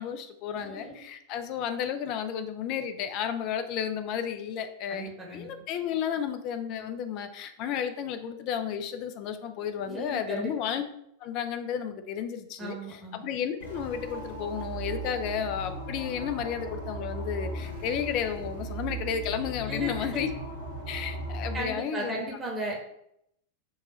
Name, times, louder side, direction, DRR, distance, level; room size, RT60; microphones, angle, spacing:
voice 1, 0.0-10.8 11.2-20.3 20.9-22.2, left 8 dB, 40° left, 8 dB, 0.4 m, -32 dB
voice 2, 0.5-1.0 4.9-5.5 9.8-10.7 12.6-13.2 19.7-20.2 21.5-22.7, right 1 dB, 15° right, -1 dB, 1.0 m, -36 dB
sound 1, 13.6-21.6, right 2 dB, 85° left, 1.4 m, -37 dB
4.7 x 2.3 x 4.0 m, 0.75 s
figure-of-eight pair, 90°, 0 cm